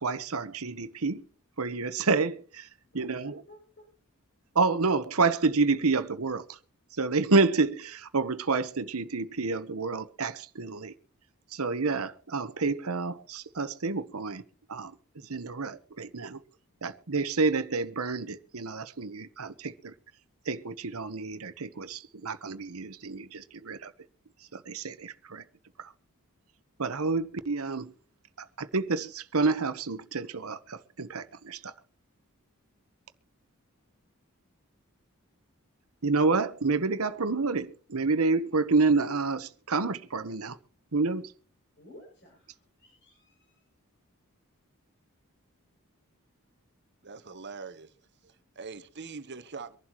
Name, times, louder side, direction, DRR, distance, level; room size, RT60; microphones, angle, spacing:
voice 1, 0.0-1.2 1.6-2.7 2.9-3.4 4.5-6.6 6.9-10.9 11.5-14.4 14.7-16.4 16.8-19.9 20.5-23.9 24.5-25.4 25.8-25.9 26.8-27.9 28.4-31.7 36.0-40.6 40.9-41.3, right 4 dB, 75° right, 1.1 m, -29 dB
voice 2, 2.8-3.9 41.8-43.7, left 1 dB, 50° left, 7.3 m, -54 dB
voice 3, 47.0-47.9 48.2-49.8, right 4 dB, 50° right, 1.1 m, -43 dB
24.5 x 11.5 x 3.1 m
head